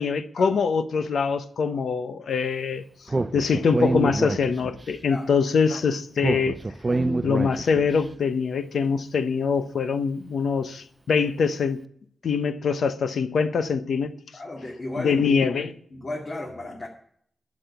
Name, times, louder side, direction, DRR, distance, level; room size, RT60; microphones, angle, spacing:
voice 1, 0.0-2.8 3.3-6.6 7.2-11.8 12.2-14.1 15.0-15.7, left 5 dB, 85° left, 0.9 m, -24 dB
Speech, 3.1-4.9 6.2-8.0, right 2 dB, 30° right, 0.6 m, -26 dB
voice 2, 14.3-15.2 15.9-16.9, left 2 dB, 45° left, 2.2 m, -34 dB
11.5 x 6.5 x 8.3 m
wide cardioid pair, 115°, 0 cm